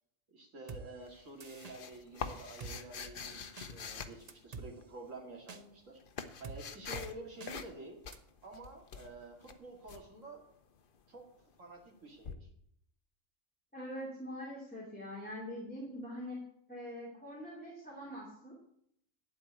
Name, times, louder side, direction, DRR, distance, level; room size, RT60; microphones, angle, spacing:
voice 1, 0.3-6.0 6.4-8.0 8.4-10.4 11.1-11.2 11.6-12.5, right 2 dB, 70° right, 1 dB, 2.6 m, -49 dB
Drum kit, 0.7-0.8 1.4-1.8 2.6-2.8 3.6-3.7 4.3-4.7 5.5-5.6 6.4-6.6 6.9-7.1 7.4-7.5 8.1-8.2, right 4 dB, 35° right, 0.7 m, -45 dB
sound 1, 1.1-4.9 5.6-7.2 7.4-7.8 8.0-10.0 12.2-12.3, left 6 dB, 45° left, 0.9 m, -44 dB
voice 2, 13.7-16.4 16.7-18.6, equal, 5° left, -5 dB, 2.7 m, -43 dB
11.5 x 4.7 x 7.9 m, 0.70 s
omnidirectional pair, 1.4 m